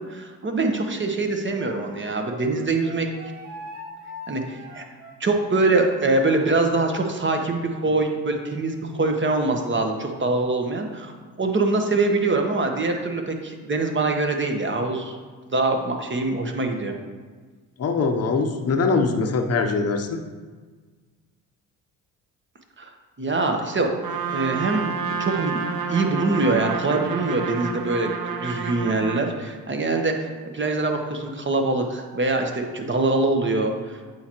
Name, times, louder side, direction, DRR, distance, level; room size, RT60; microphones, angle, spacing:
voice 1, 0.0-3.1 4.3-4.8 5.2-11.1 11.4-15.2 15.5-16.9 22.8-22.9 23.2-23.9 24.3-24.9 25.2-25.6 25.9-30.3 30.5-34.0, right 3 dB, 25° right, 4 dB, 1.0 m, -24 dB
Wind instrument woodwind instrument, 1.5-6.6, left 1 dB, 90° right, 1.2 m, -41 dB
voice 2, 17.8-20.2, left 4 dB, 35° left, 5 dB, 0.8 m, -22 dB
Trumpet, 24.0-29.3, right 5 dB, 55° right, 0.8 m, -29 dB
8.4 x 4.5 x 3.0 m, 1.4 s
hypercardioid pair, 55°, 42 cm